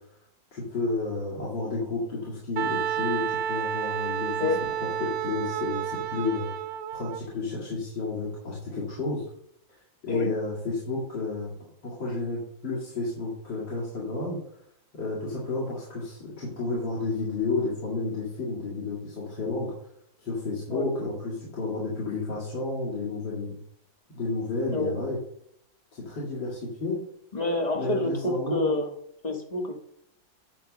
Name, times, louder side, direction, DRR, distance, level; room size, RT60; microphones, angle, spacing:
voice 1, 0.5-4.5 4.8-6.5 6.9-9.2 10.0-11.5 11.8-14.4 14.9-19.7 20.2-23.6 24.1-25.2 25.9-27.0 27.7-28.7, left 3 dB, 70° left, -6 dB, 3.1 m, -31 dB
Wind instrument woodwind instrument, 2.6-7.2, right 9 dB, 70° right, 1.0 m, -30 dB
voice 2, 27.3-28.9 29.2-29.7, left 2 dB, 20° left, 1 dB, 1.5 m, -27 dB
11.0 x 3.6 x 6.1 m, 0.68 s
omnidirectional pair, 2.1 m